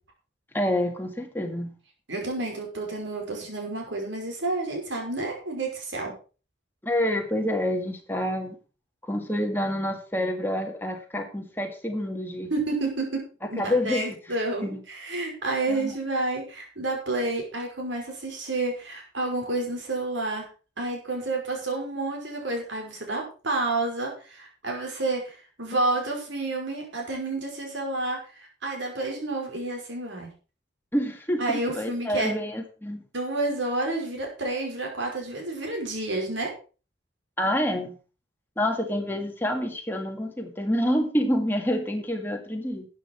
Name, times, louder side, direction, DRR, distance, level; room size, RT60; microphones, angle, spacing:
voice 1, 0.5-1.7 6.8-8.6 9.0-12.5 13.6-14.1 14.6-14.8 15.7-15.9 30.9-33.0 37.4-37.9 38.6-42.9, left 1 dB, 10° left, 2 dB, 2.0 m, -27 dB
voice 2, 2.1-6.1 12.5-20.5 20.8-28.2 28.6-30.3 31.4-32.3 33.1-36.5, right 2 dB, 75° right, 1 dB, 5.3 m, -30 dB
13.0 x 8.9 x 4.6 m, 0.36 s
head